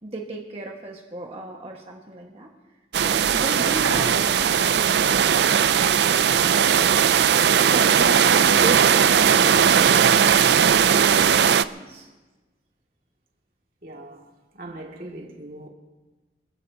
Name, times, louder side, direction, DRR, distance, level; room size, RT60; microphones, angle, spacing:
voice 1, 0.0-2.5 3.0-7.0 7.6-9.9 10.7-12.1, right 1 dB, 35° right, 1.5 m, -35 dB
sound 1, 2.9-11.6, right 8 dB, 70° right, 0.4 m, -18 dB
sound 2, 3.7-10.4, left 1 dB, 75° left, 3.4 m, -40 dB
voice 2, 13.8-15.7, right 1 dB, 50° right, 2.3 m, -40 dB
26.5 x 16.0 x 2.8 m
head